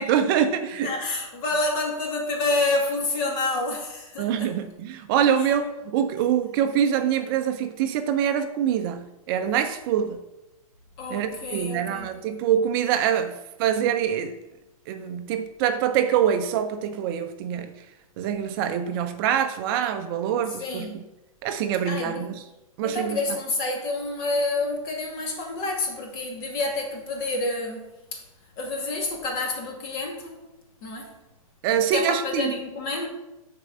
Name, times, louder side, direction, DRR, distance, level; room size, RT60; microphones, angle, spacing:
voice 1, 0.0-0.9 4.2-10.2 11.1-14.4 14.9-17.7 18.2-21.0 21.4-22.4 22.8-23.4 31.6-32.5, right 9 dB, 40° right, 8 dB, 0.6 m, -25 dB
voice 2, 0.8-4.5 5.4-5.5 11.0-12.1 20.6-21.1 21.9-22.3 22.8-28.2 28.6-30.4 30.8-31.2 31.9-33.1, left 2 dB, 40° left, 1 dB, 2.2 m, -28 dB
6.4 x 4.6 x 6.4 m, 0.97 s
hypercardioid pair, 125°, 19 cm